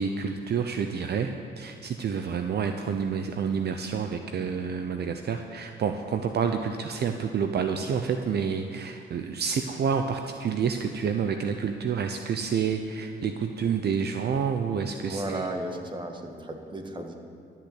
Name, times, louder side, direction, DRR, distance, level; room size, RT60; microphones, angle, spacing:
voice 1, 0.0-15.5, right 6 dB, 55° right, 6 dB, 0.8 m, -29 dB
voice 2, 15.1-17.1, right 1 dB, 25° right, 4 dB, 1.8 m, -34 dB
13.0 x 9.2 x 8.1 m, 2.6 s
cardioid pair, 90°, 20 cm